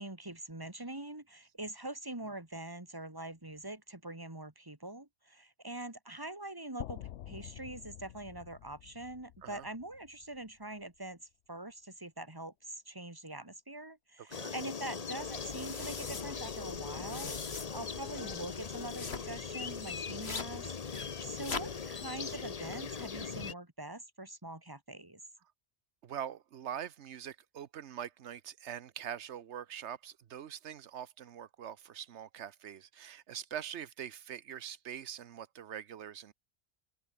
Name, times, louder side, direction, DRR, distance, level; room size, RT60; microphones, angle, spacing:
voice 1, 0.0-11.2 11.5-25.2, right 1 dB, 20° right, 2.6 m, -44 dB
sound 1, 6.8-10.8, left 12 dB, 85° left, 1.0 m, -48 dB
voice 2, 14.2-14.5 26.0-36.3, right 9 dB, 80° right, 1.2 m, -43 dB
sound 2, 14.3-23.5, left 5 dB, 35° left, 0.9 m, -40 dB
sound 3, 15.2-23.3, left 4 dB, 65° left, 2.3 m, -45 dB
open air
omnidirectional pair, 1.1 m